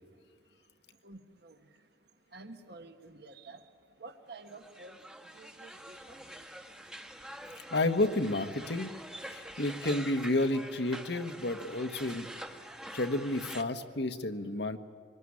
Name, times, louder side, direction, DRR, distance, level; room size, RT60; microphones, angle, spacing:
voice 1, 1.0-1.6 2.3-3.6 4.0-5.0 5.3-6.2, right 3 dB, 60° right, 6 dB, 1.4 m, -50 dB
sound 1, 4.4-13.6, right 1 dB, 5° right, 1.2 m, -46 dB
voice 2, 7.7-8.9 9.2-12.3 12.9-14.8, left 2 dB, 70° left, 8 dB, 1.4 m, -31 dB
25.0 x 19.5 x 9.9 m, 2.2 s
head